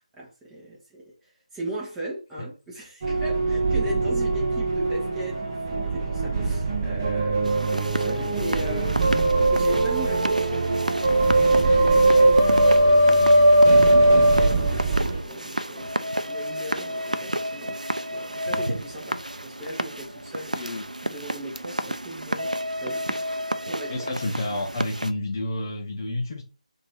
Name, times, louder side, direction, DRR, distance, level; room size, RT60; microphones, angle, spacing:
voice 1, 0.0-10.9 11.7-13.5 13.8-20.5 21.0-23.4 23.7-24.1, right 1 dB, 5° right, 1.1 m, -38 dB
sound 1, 3.0-15.2, right 2 dB, 25° right, 0.7 m, -20 dB
sound 2, 7.4-25.1, right 1 dB, 85° right, 0.4 m, -31 dB
voice 2, 20.5-20.8 23.9-26.4, left 1 dB, 30° left, 0.6 m, -30 dB
2.9 x 2.7 x 4.3 m
figure-of-eight pair, 155°, 4 cm